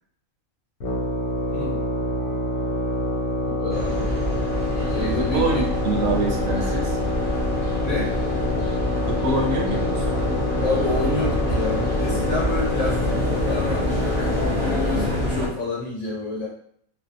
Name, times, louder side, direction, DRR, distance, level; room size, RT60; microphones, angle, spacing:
sound 1, 0.8-15.3, left 2 dB, 90° left, 1.1 m, -27 dB
voice 1, 1.5-1.9 3.5-4.1 4.9-5.6 7.8-8.2 10.6-16.5, left 2 dB, 65° left, -7 dB, 1.0 m, -29 dB
sound 2, 1.5-1.6 2.0-5.6 7.3-14.6, left 1 dB, ahead, 0.8 m, -44 dB
sound 3, 3.7-15.5, left 1 dB, 35° right, 0.6 m, -26 dB
voice 2, 5.2-7.0 9.0-10.1, right 2 dB, 75° right, 1 dB, 0.9 m, -25 dB
2.6 x 2.1 x 2.5 m, 0.64 s
omnidirectional pair, 1.4 m